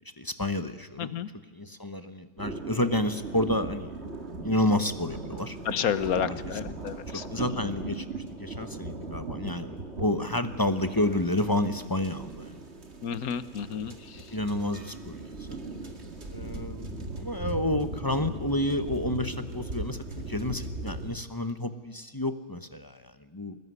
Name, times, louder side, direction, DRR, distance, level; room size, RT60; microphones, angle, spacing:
voice 1, 0.2-1.1 1.5-3.9 4.4-5.6 6.3-6.6 7.1-8.1 8.4-12.6 13.7-14.0 14.3-15.6 16.3-23.6, left 1 dB, 15° left, 10 dB, 0.8 m, -30 dB
voice 2, 1.0-1.3 5.7-7.2 13.0-13.9, left 8 dB, 60° left, 14 dB, 1.4 m, -30 dB
sound 1, 2.4-21.1, right 3 dB, 40° right, 2.4 m, -38 dB
22.5 x 19.5 x 9.6 m, 1.4 s
omnidirectional pair, 1.8 m